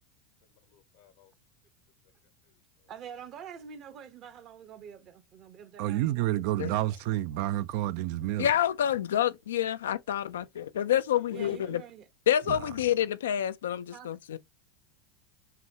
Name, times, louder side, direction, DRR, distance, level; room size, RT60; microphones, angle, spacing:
voice 1, 0.4-1.3 2.5-2.9 10.4-10.5 11.2-11.8, left 9 dB, 70° left, 0.8 m, -56 dB
voice 2, 2.9-7.0 11.3-12.1 13.9-14.1, right 8 dB, 50° right, 0.9 m, -46 dB
voice 3, 5.8-8.5 12.5-12.6, right 14 dB, 65° right, 0.3 m, -29 dB
voice 4, 8.4-11.8 12.3-14.4, left 10 dB, 85° left, 0.3 m, -28 dB
5.7 x 2.3 x 2.8 m
hypercardioid pair, 95°, 0 cm